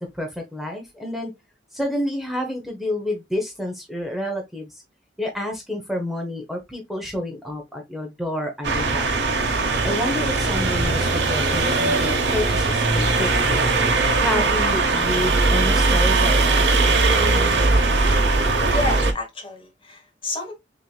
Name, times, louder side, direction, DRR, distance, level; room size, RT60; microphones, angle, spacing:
voice 1, 0.0-1.3 1.7-4.8 5.2-9.3 9.8-13.6 14.2-16.7, left 1 dB, ahead, 0.9 m, -29 dB
sound 1, 8.6-19.1, right 3 dB, 75° right, 1.0 m, -20 dB
voice 2, 18.6-20.5, left 2 dB, 30° left, 1.3 m, -30 dB
6.2 x 2.9 x 2.3 m
head